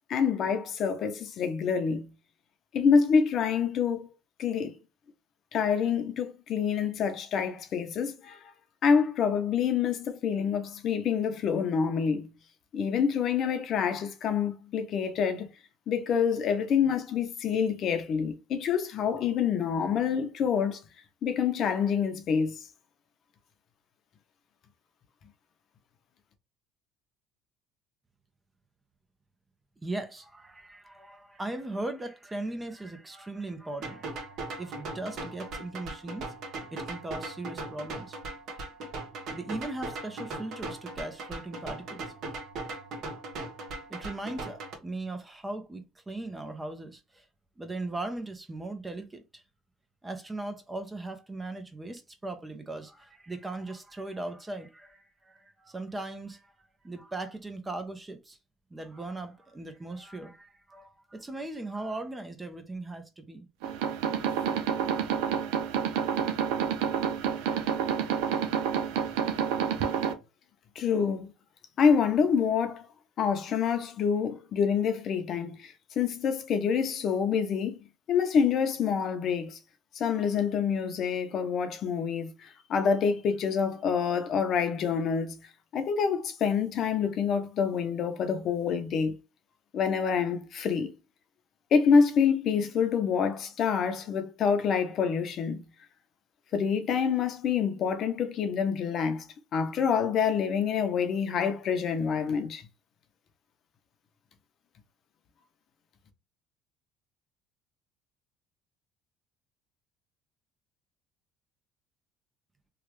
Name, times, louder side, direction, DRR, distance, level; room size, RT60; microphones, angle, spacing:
voice 1, 0.1-2.0 2.7-4.1 4.4-4.7 5.5-8.4 8.8-12.3 12.7-15.5 15.9-20.8 21.2-22.6 70.8-71.3 71.8-72.9 73.2-77.8 78.1-79.6 79.9-85.3 85.7-89.2 89.7-90.9 91.7-95.6 96.5-99.3 99.5-102.6, left 6 dB, 50° left, 0.7 m, -27 dB
voice 2, 29.8-36.3 36.7-38.2 39.3-42.0 43.9-47.3 47.6-49.4 50.0-56.5 56.8-58.4 58.7-63.5, right 2 dB, 15° right, 0.6 m, -38 dB
sound 1, 33.8-44.7, right 2 dB, 55° right, 1.3 m, -39 dB
sound 2, 63.6-70.1, right 8 dB, 90° right, 0.6 m, -29 dB
3.2 x 2.4 x 3.1 m
cardioid pair, 120°, 0 cm